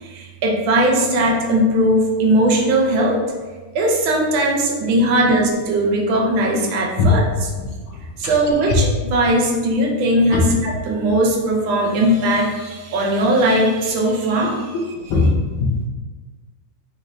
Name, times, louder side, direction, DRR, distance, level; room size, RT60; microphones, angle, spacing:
voice 1, 0.0-3.2 3.7-7.2 8.2-14.7, right 1 dB, 80° right, -1 dB, 1.4 m, -18 dB
voice 2, 7.6-8.3 8.6-8.7 10.3-10.5 15.1-15.3 15.6-15.7, left 4 dB, 80° left, 0 dB, 1.5 m, -20 dB
4.3 x 3.0 x 2.5 m, 1.3 s
omnidirectional pair, 2.2 m